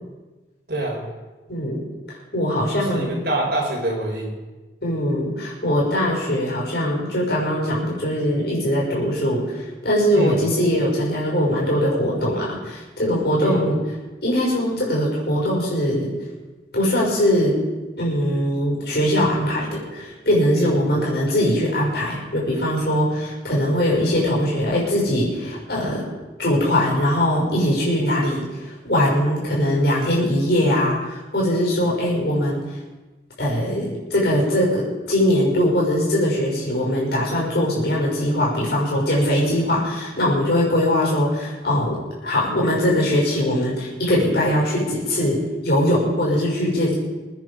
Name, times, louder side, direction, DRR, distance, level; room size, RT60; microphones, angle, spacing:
voice 1, 0.7-1.0 2.7-4.4 10.1-10.4 13.4-13.6 20.5-20.9, right 1 dB, 60° right, -2 dB, 4.7 m, -26 dB
voice 2, 2.3-3.2 4.8-13.8 14.2-16.1 16.7-17.6 18.0-26.0 26.4-32.6 33.4-47.0, equal, 65° left, -5 dB, 5.9 m, -21 dB
22.5 x 9.6 x 5.1 m, 1.2 s
head